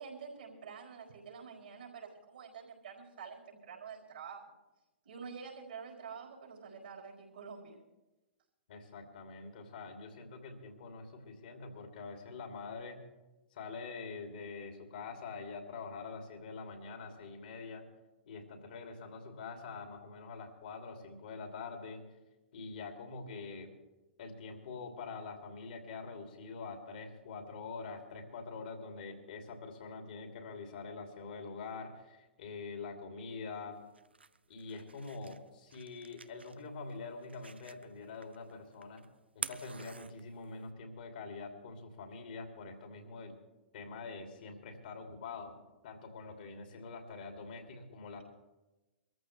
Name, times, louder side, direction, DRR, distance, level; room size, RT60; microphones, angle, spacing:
voice 1, 0.0-4.4 5.0-7.8, right 6 dB, 65° right, -3 dB, 4.4 m, -47 dB
voice 2, 8.7-13.0 13.5-17.8 18.3-22.0 22.5-23.7 24.2-33.8 34.5-39.0 39.3-43.4 43.7-48.2, left 4 dB, 60° left, 4 dB, 2.7 m, -45 dB
sound 1, 33.7-40.7, right 4 dB, 85° right, 0.6 m, -49 dB
24.0 x 14.0 x 3.3 m, 1.1 s
figure-of-eight pair, 110°, 6 cm